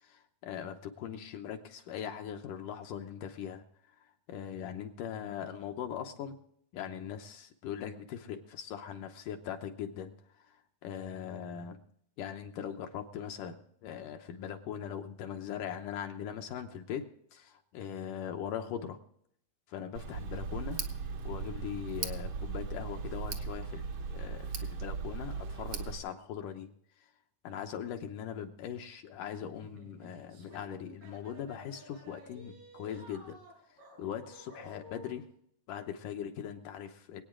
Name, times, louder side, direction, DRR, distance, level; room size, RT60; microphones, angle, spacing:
voice 1, 0.0-6.4 6.7-11.8 12.2-17.1 17.3-19.0 19.7-20.9 21.2-27.1 27.4-33.4 33.6-35.3 35.7-37.2, left 9 dB, 70° left, 5 dB, 2.3 m, -41 dB
Tick, 19.9-26.0, right 5 dB, 60° right, 1.7 m, -38 dB
sound 1, 29.6-35.2, equal, 80° right, 6.2 m, -53 dB
24.0 x 9.0 x 3.7 m, 0.69 s
omnidirectional pair, 4.1 m